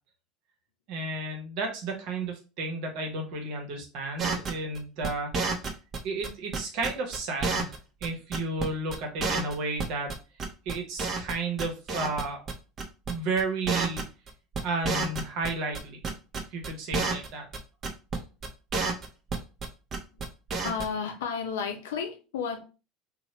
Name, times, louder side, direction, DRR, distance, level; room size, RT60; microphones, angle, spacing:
voice 1, 0.9-5.3 6.0-7.7 8.0-10.1 10.6-12.4 13.1-14.0 14.6-16.0 16.5-17.5, right 3 dB, 65° right, 0.9 m, -32 dB
sound 1, 4.2-6.0 6.2-7.8 8.0-8.1 8.3-8.6 8.9-9.0 9.2-10.1 10.4-11.3 11.6-12.2 12.5-12.6 12.8-13.1 13.4-13.5 13.7-14.3 14.5-15.8 16.0-17.3 17.5-17.6 17.8-18.2 18.4-19.7 19.9-20.2 20.5-20.8, right 4 dB, 40° right, 0.6 m, -29 dB
voice 2, 20.6-22.7, left 6 dB, 80° left, 0.6 m, -33 dB
2.9 x 2.1 x 3.0 m
hypercardioid pair, 85°, 0 cm